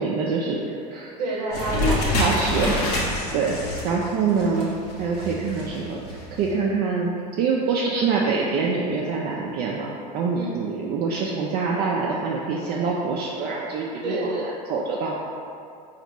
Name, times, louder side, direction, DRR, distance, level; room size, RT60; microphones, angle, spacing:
voice 1, 0.0-1.1 2.1-4.7 5.0-15.1, right 4 dB, 50° right, -3 dB, 0.4 m, -25 dB
voice 2, 1.2-2.5 10.3-10.5 14.0-14.4, right 2 dB, 85° right, -3 dB, 0.8 m, -29 dB
sound 1, 1.5-6.5, left 1 dB, 70° left, 0.9 m, -27 dB
4.1 x 2.5 x 2.9 m, 2.4 s
hypercardioid pair, 80°, 21 cm